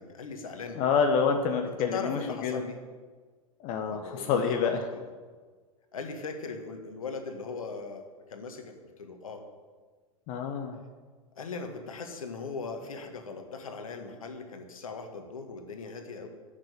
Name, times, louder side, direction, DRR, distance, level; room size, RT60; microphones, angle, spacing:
voice 1, 0.0-0.8 1.6-2.8 3.9-5.1 5.9-9.4 11.4-16.3, left 4 dB, 70° left, 5 dB, 1.9 m, -39 dB
voice 2, 0.8-2.6 3.6-4.8 10.3-10.8, left 6 dB, 40° left, 5 dB, 1.2 m, -27 dB
10.5 x 7.5 x 9.2 m, 1.5 s
figure-of-eight pair, 95°, 19 cm